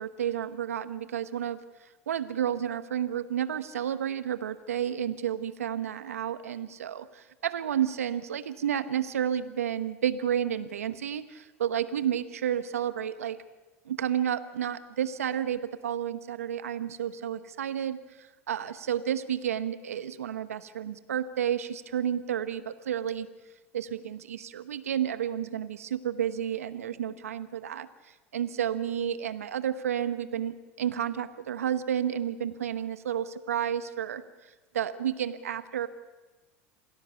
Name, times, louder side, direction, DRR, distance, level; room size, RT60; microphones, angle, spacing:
voice 1, 0.0-13.4 13.9-23.3 23.7-35.9, right 9 dB, 90° right, 12 dB, 1.0 m, -31 dB
27.5 x 18.0 x 7.0 m, 1.2 s
hypercardioid pair, 85°, 8 cm